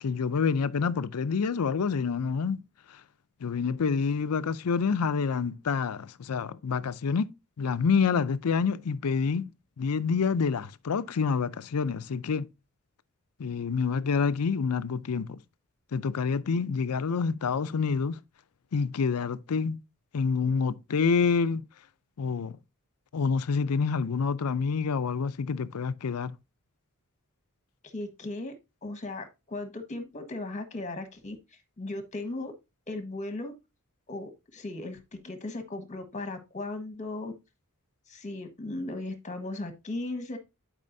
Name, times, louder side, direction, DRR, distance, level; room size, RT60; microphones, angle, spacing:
voice 1, 0.0-2.6 3.4-7.3 7.6-9.5 9.8-12.5 13.4-15.4 15.9-18.2 18.7-19.8 20.1-21.6 22.2-22.6 23.1-26.3, left 5 dB, 85° left, 0.5 m, -27 dB
voice 2, 27.9-28.5 28.8-31.4 31.8-32.5 32.9-33.5 34.1-37.3 38.1-40.4, left 2 dB, 35° left, 1.4 m, -37 dB
11.0 x 4.9 x 2.6 m
head